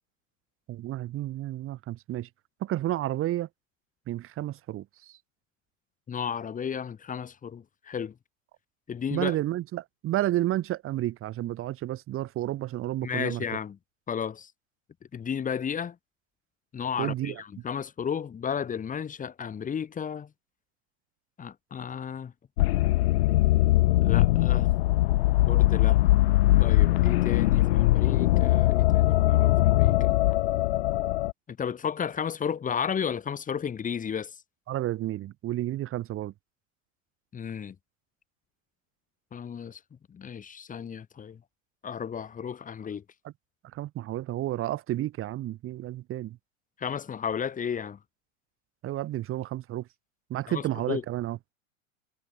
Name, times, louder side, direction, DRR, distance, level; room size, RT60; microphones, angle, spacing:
voice 1, 0.7-2.3 2.6-3.5 4.1-5.1 9.1-13.4 17.0-17.4 34.7-36.3 43.2-43.3 43.7-46.4 48.8-49.9 50.3-51.4, right 14 dB, 35° right, 5.8 m, -31 dB
voice 2, 6.1-8.1 8.9-9.4 13.0-13.8 14.1-14.5 15.1-16.0 16.7-20.3 21.4-22.3 24.0-24.7 25.5-26.0 26.6-30.1 31.5-34.3 37.3-37.7 39.3-39.8 40.1-41.4 41.8-43.0 46.8-48.0 50.5-51.0, left 7 dB, 20° left, 4.3 m, -33 dB
sound 1, 22.6-31.3, left 17 dB, 50° left, 0.6 m, -21 dB
figure-of-eight pair, 95°, 39 cm